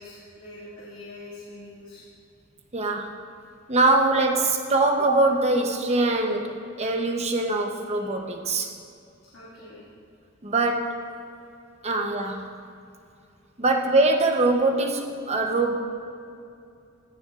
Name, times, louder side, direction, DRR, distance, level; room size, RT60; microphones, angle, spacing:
voice 1, 0.0-2.0 7.9-8.1 9.3-9.8, left 2 dB, 85° left, -9 dB, 2.0 m, -44 dB
voice 2, 2.7-3.1 3.7-8.7 10.4-11.0 11.8-12.5 13.6-15.7, right 2 dB, 30° right, 3 dB, 0.8 m, -23 dB
16.0 x 7.0 x 2.4 m, 2.5 s
head